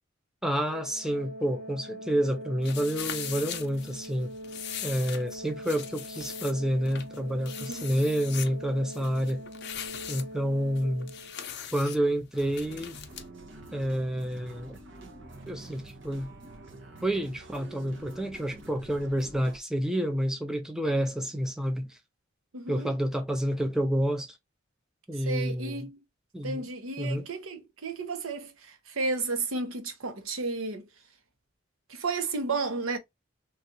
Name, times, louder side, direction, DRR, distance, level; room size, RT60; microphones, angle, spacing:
voice 1, 0.4-4.3 4.8-9.4 10.1-11.1 11.7-13.0 13.7-14.8 15.5-16.3 17.0-22.0 22.7-24.4 25.1-25.9 26.3-26.6 27.0-27.3, equal, 5° right, 0.5 m, -29 dB
Organ, 0.7-11.6, equal, 45° right, 1.7 m, -43 dB
sound 1, 2.6-13.3, left 9 dB, 55° left, 0.6 m, -41 dB
voice 2, 7.6-7.9 22.5-22.9 25.2-26.0 26.4-30.9 31.9-33.0, right 3 dB, 90° right, 0.9 m, -33 dB
sound 2, 12.3-19.6, right 2 dB, 60° right, 0.9 m, -47 dB
3.2 x 2.4 x 2.7 m
head